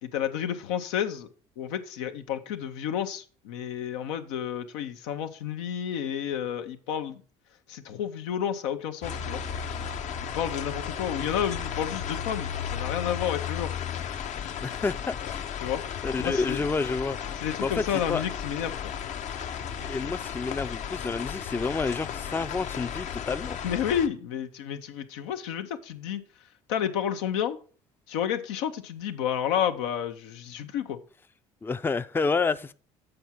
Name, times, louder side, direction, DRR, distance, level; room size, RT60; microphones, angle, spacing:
voice 1, 0.0-1.3 1.6-7.2 7.7-9.4 10.3-13.7 15.6-15.8 16.2-16.7 17.4-18.9 23.6-26.2 26.7-27.6 28.1-31.0, left 9 dB, 90° left, 0.8 m, -31 dB
sound 1, 9.0-24.1, left 8 dB, 55° left, 0.7 m, -34 dB
voice 2, 14.6-15.4 16.0-17.2 17.6-17.8 18.1-18.2 19.8-23.6 31.6-32.7, left 4 dB, 15° left, 0.4 m, -29 dB
7.9 x 4.8 x 5.7 m
supercardioid pair, 80°, 15 cm